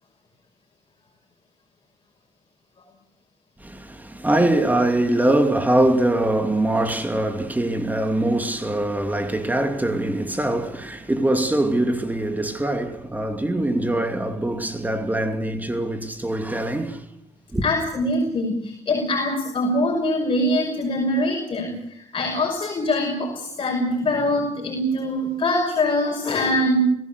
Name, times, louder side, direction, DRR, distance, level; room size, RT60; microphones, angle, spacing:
voice 1, 3.6-17.0 17.5-17.6, right 1 dB, 15° right, 2.7 m, -23 dB
voice 2, 17.6-26.8, left 1 dB, 45° left, 5.9 m, -23 dB
26.0 x 16.5 x 8.3 m
cardioid pair, 80°, 12 cm